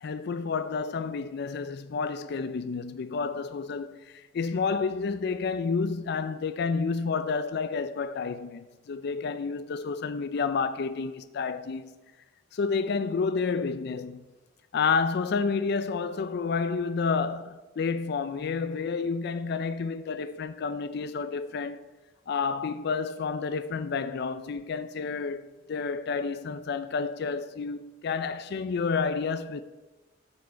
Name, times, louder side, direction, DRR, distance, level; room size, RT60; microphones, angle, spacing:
voice 1, 0.0-11.9 12.5-14.2 14.7-21.8 22.3-29.6, left 5 dB, 60° left, 0.4 m, -30 dB
14.0 x 4.9 x 4.5 m
head